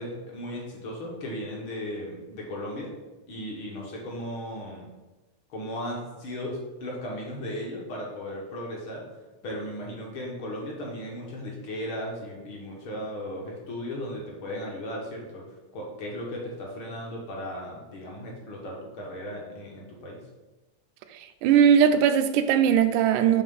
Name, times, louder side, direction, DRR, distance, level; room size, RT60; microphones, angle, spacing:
voice 1, 0.0-2.9 3.3-4.9 5.5-9.1 9.4-15.4 15.7-20.2, equal, 55° left, 1.5 m, -36 dB
voice 2, 21.1-23.4, right 8 dB, 85° right, 2.0 m, -20 dB
7.2 x 3.4 x 5.4 m
omnidirectional pair, 3.5 m